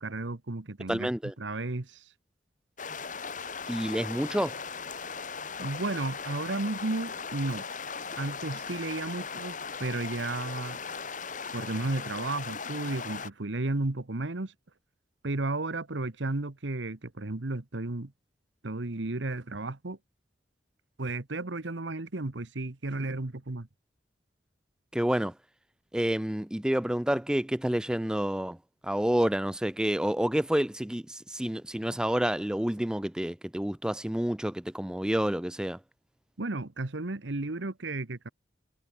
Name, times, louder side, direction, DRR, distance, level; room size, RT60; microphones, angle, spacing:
voice 1, 0.0-1.1 1.4-2.0 5.6-7.6 8.2-10.8 11.5-14.5 15.2-18.1 18.6-20.0 21.0-23.7 36.4-38.3, right 2 dB, 70° right, 1.3 m, -33 dB
voice 2, 0.9-1.3 3.7-4.5 24.9-25.3 25.9-28.6 28.8-35.8, right 1 dB, 5° right, 0.3 m, -29 dB
sound 1, 2.8-13.3, left 5 dB, 40° left, 2.3 m, -38 dB
head